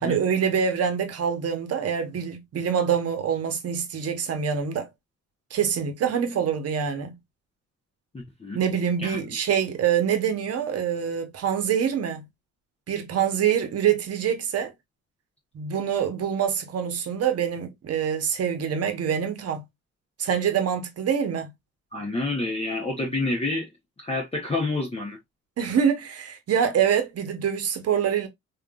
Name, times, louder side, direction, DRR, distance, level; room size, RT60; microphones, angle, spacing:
voice 1, 0.0-4.9 5.5-7.2 8.5-12.2 12.9-14.7 15.5-19.6 20.2-21.5 25.6-28.3, right 8 dB, 55° right, 0.9 m, -25 dB
voice 2, 8.1-8.6 9.0-9.2 21.9-23.7 24.0-25.2, left 2 dB, 20° left, 0.9 m, -28 dB
3.4 x 2.4 x 2.3 m
cardioid pair, 90°, 30 cm